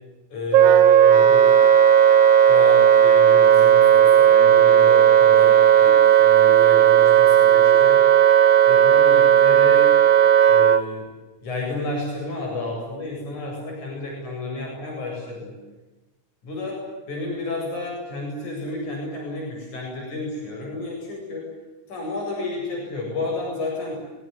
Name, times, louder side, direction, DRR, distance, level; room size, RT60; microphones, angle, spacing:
voice 1, 0.3-1.5 2.3-8.0 8.7-9.9 10.5-11.1 11.4-15.5 16.5-16.7 17.1-21.5 21.9-24.1, left 2 dB, 60° left, -1 dB, 9.6 m, -31 dB
Wind instrument woodwind instrument, 0.5-10.8, right 9 dB, 65° right, 2.6 m, -14 dB
25.5 x 23.0 x 9.8 m, 1.1 s
omnidirectional pair, 3.8 m